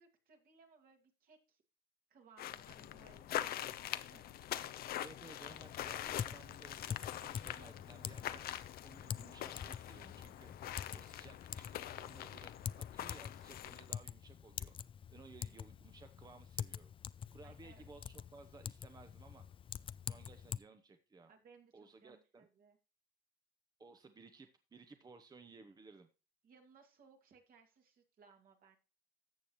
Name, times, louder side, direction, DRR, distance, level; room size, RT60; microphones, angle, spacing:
voice 1, 0.0-1.6 2.1-4.3 17.4-17.9 21.3-22.8 26.4-28.8, right 5 dB, 60° right, 4 dB, 2.3 m, -64 dB
sound 1, 2.4-14.0, left 12 dB, 65° left, 0.7 m, -44 dB
voice 2, 5.0-8.5 8.8-10.5 10.9-14.7 15.1-16.9 17.3-19.5 20.1-21.3 21.7-22.5 23.8-26.1, right 3 dB, 25° right, 7 dB, 0.9 m, -58 dB
Typing, 5.5-20.6, left 8 dB, 30° left, 0.4 m, -46 dB
13.5 x 7.1 x 3.1 m, 0.33 s
cardioid pair, 110°, 17 cm